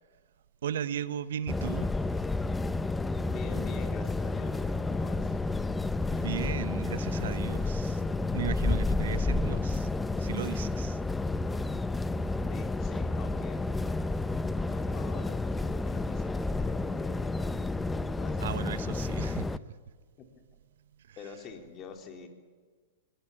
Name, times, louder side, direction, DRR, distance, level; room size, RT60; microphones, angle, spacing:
voice 1, 0.6-1.9 6.1-11.0 18.4-19.6 21.1-21.2, right 9 dB, 70° right, 1.0 m, -36 dB
sound 1, 1.5-19.6, left 3 dB, 10° left, 0.7 m, -30 dB
voice 2, 3.2-5.4 12.5-13.6 14.5-17.4 18.1-19.1 20.2-20.3 21.2-22.3, left 6 dB, 30° left, 3.9 m, -46 dB
23.0 x 18.5 x 9.9 m
hypercardioid pair, 125°, 0 cm